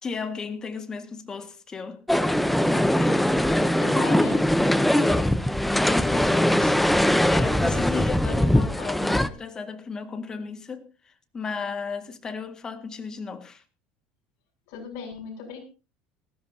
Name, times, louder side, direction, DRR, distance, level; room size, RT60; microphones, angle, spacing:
voice 1, 0.0-2.5 3.0-3.3 4.9-5.4 5.8-10.9 11.3-13.6, left 5 dB, 25° left, 1.9 m, -35 dB
sound 1, 2.1-9.3, left 1 dB, 5° left, 0.8 m, -21 dB
voice 2, 3.8-4.4 8.3-9.2 14.7-15.6, left 5 dB, 70° left, 7.9 m, -37 dB
19.0 x 15.5 x 2.8 m
supercardioid pair, 115°, 3 cm